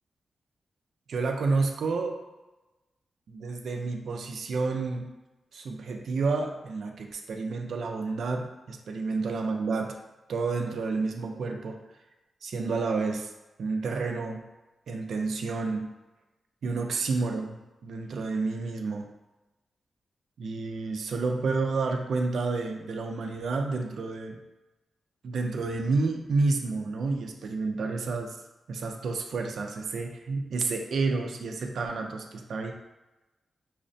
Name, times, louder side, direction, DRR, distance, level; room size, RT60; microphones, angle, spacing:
voice 1, 1.1-2.2 3.3-5.1 5.5-10.0 10.3-11.8 12.4-13.3 13.6-14.4 14.9-15.9 16.6-19.1 20.4-24.4 25.2-28.4 28.7-32.7, right 3 dB, 70° right, 3 dB, 0.4 m, -30 dB
5.6 x 2.1 x 2.6 m, 1.1 s
wide cardioid pair, 160°, 0 cm